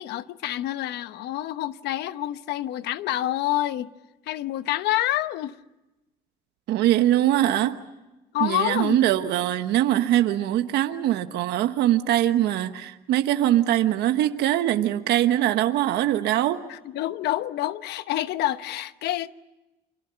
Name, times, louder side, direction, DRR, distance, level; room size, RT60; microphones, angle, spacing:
voice 1, 0.0-3.9 4.3-5.6 8.3-9.0 16.7-19.3, left 14 dB, 80° left, 1.0 m, -27 dB
voice 2, 6.7-7.8 8.4-16.6, right 13 dB, 80° right, 1.2 m, -22 dB
30.0 x 25.5 x 6.9 m
cardioid pair, 110°, 17 cm